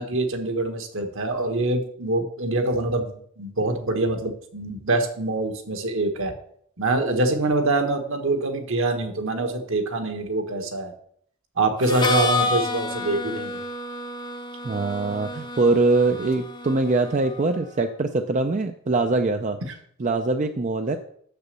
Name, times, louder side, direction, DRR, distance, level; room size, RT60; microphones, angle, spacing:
voice 1, 0.0-3.1 3.4-6.3 6.8-10.9 11.6-13.6, right 2 dB, 65° right, 5 dB, 1.5 m, -25 dB
Harmonica, 11.8-17.6, left 3 dB, 20° left, 0.7 m, -30 dB
voice 2, 14.6-19.6 20.0-21.0, right 3 dB, 35° right, 7 dB, 0.5 m, -23 dB
7.0 x 6.8 x 6.8 m, 0.65 s
head